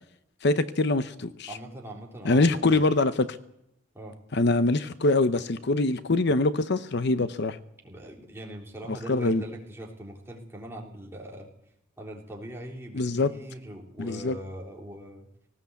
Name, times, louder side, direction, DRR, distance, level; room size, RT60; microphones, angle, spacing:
voice 1, 0.4-1.5 2.2-3.3 4.3-7.6 9.1-9.4 12.9-13.3 14.0-14.4, left 2 dB, 60° left, 12 dB, 0.8 m, -24 dB
voice 2, 1.5-2.9 3.9-4.2 7.8-11.5 12.0-15.3, right 1 dB, 10° right, -1 dB, 3.6 m, -41 dB
19.0 x 17.0 x 8.2 m, 0.77 s
head